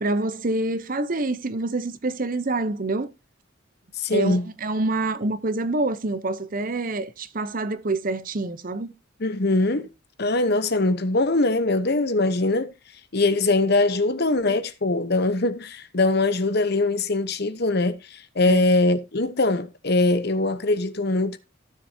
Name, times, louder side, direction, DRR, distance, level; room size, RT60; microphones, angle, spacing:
voice 1, 0.0-3.1 4.1-8.9 18.5-18.6, right 2 dB, 40° right, 0.8 m, -26 dB
voice 2, 4.0-4.4 9.2-9.9 10.2-12.7 13.1-21.4, left 2 dB, 50° left, 1.0 m, -22 dB
15.5 x 7.1 x 2.8 m
head